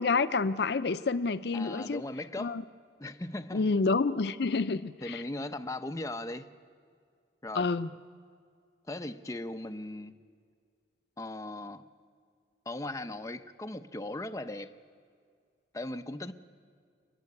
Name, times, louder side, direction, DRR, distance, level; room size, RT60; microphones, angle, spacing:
voice 1, 0.0-2.0 2.4-2.6 3.5-5.2 7.5-7.9, left 4 dB, 60° left, 0.5 m, -28 dB
voice 2, 1.5-2.6 3.0-3.7 5.0-6.5 7.4-7.7 8.9-10.2 11.2-11.8 12.7-14.7 15.7-16.3, left 1 dB, 15° left, 0.6 m, -38 dB
28.5 x 12.0 x 9.6 m
head